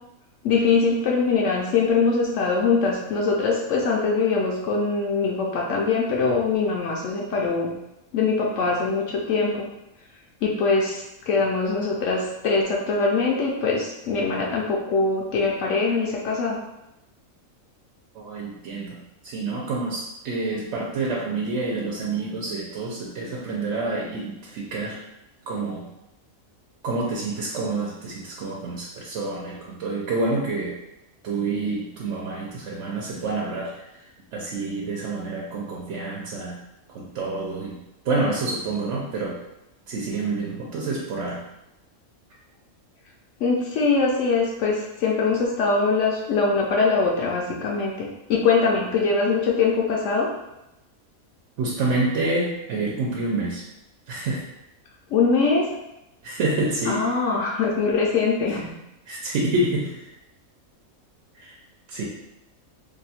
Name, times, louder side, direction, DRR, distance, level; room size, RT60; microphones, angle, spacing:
voice 1, 0.4-7.7 8.1-9.7 10.4-16.6 43.4-50.3 55.1-55.7 56.9-58.7, left 4 dB, 70° left, -2 dB, 0.8 m, -22 dB
voice 2, 18.1-25.0 25.5-25.9 26.8-30.8 31.2-33.8 34.3-36.6 36.9-37.8 38.0-39.4 39.9-41.4 51.6-53.6 54.1-54.5 56.2-57.1 59.1-60.1 61.3-61.6 61.9-62.0, right 2 dB, 65° right, -3 dB, 0.8 m, -28 dB
2.7 x 2.2 x 4.1 m, 0.91 s
omnidirectional pair, 1.5 m